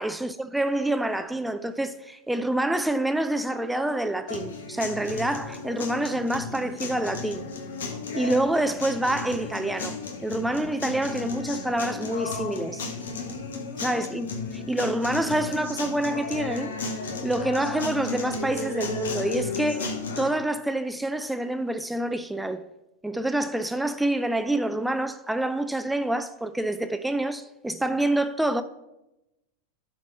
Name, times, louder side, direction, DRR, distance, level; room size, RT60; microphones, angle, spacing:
voice 1, 0.0-7.5 8.1-10.0 10.2-12.8 13.8-14.3 14.5-16.7 17.2-22.6 23.0-28.6, right 1 dB, 5° right, 0.4 m, -27 dB
sound 1, 4.3-20.3, left 4 dB, 75° left, 1.5 m, -34 dB
11.5 x 4.6 x 4.1 m
hypercardioid pair, 100°, 0 cm